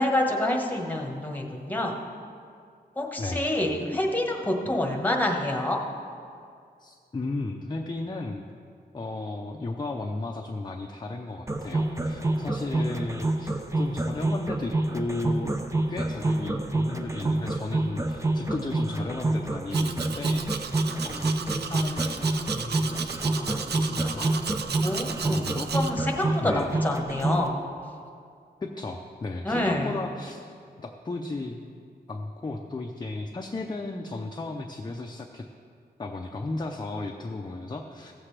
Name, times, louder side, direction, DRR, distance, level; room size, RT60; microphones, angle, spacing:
voice 1, 0.0-1.9 3.0-5.8 24.8-26.5 26.8-27.6 29.4-29.9, left 1 dB, 10° left, 0 dB, 1.2 m, -27 dB
voice 2, 6.8-8.4 8.9-15.5 15.9-20.7 21.0-24.4 25.2-25.7 26.4-26.8 28.6-30.5 30.8-31.6 32.1-35.5 36.0-38.1, left 2 dB, 25° left, 2 dB, 0.6 m, -35 dB
sound 1, 11.5-27.4, right 2 dB, 15° right, 0.6 m, -27 dB
Domestic sounds home sounds, 19.7-25.9, right 6 dB, 75° right, 0.5 m, -35 dB
15.5 x 7.5 x 3.3 m, 2.3 s
wide cardioid pair, 110°, 17 cm